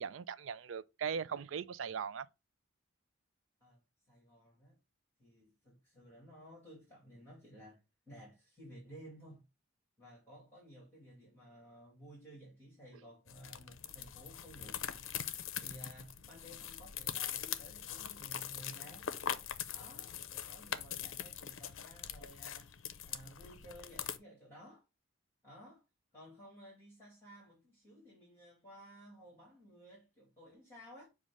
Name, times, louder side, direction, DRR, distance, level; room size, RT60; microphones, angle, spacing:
voice 1, 0.0-2.3, right 7 dB, 70° right, 0.4 m, -39 dB
voice 2, 4.1-4.8 5.2-7.8 8.1-9.4 10.0-19.1 19.7-22.8 23.0-24.8 25.4-25.8 26.1-31.1, equal, 10° left, 2.5 m, -55 dB
sound 1, 13.3-24.2, left 9 dB, 75° left, 0.6 m, -42 dB
7.3 x 2.5 x 5.2 m
head